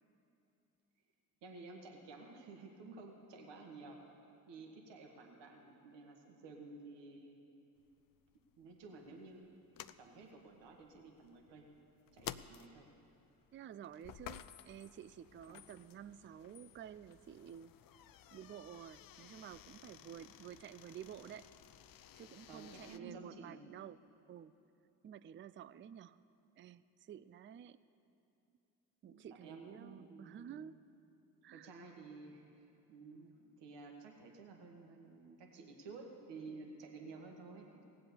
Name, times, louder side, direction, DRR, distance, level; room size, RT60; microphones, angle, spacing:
voice 1, 1.4-7.4 8.6-9.5 10.0-11.7 12.1-12.9 15.5-15.6 22.5-23.7 29.1-30.6 31.5-37.8, right 3 dB, 70° right, 2 dB, 1.6 m, -53 dB
sound 1, 7.8-23.0, left 11 dB, 50° left, 0.5 m, -55 dB
voice 2, 13.5-17.7 18.3-21.5 22.1-24.0 24.3-24.5 25.0-26.2 26.6-27.8 29.0-30.8 31.4-31.7, right 9 dB, 30° right, 15 dB, 0.4 m, -51 dB
17.0 x 7.6 x 6.9 m, 2.7 s
hypercardioid pair, 50°, 45 cm